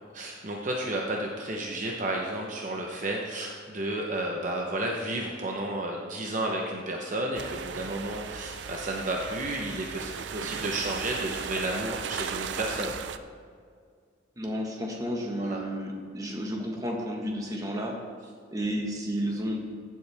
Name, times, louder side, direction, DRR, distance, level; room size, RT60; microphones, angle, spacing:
voice 1, 0.1-12.9 15.4-15.6, right 1 dB, 45° right, 0 dB, 0.9 m, -32 dB
sound 1, 7.3-13.2, right 6 dB, 70° right, 0.5 m, -36 dB
voice 2, 14.4-18.0 18.5-19.6, equal, 20° right, 0 dB, 1.4 m, -32 dB
15.0 x 7.7 x 3.5 m, 2.1 s
head